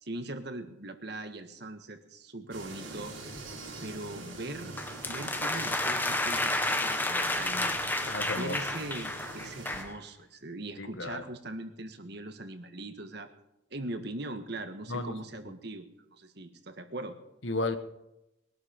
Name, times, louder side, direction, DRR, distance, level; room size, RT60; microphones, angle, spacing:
voice 1, 0.0-3.3 3.8-4.7 5.1-7.9 8.3-13.3 13.7-17.2, right 2 dB, 55° right, 7 dB, 1.5 m, -41 dB
sound 1, 2.5-9.8, right 2 dB, 80° right, 6.2 m, -44 dB
sound 2, 4.8-9.9, left 2 dB, 10° left, 1.0 m, -31 dB
voice 2, 8.0-8.6 10.8-11.2 14.9-15.2 17.4-17.8, left 2 dB, 70° left, 9 dB, 1.4 m, -33 dB
22.0 x 11.5 x 5.2 m, 0.89 s
head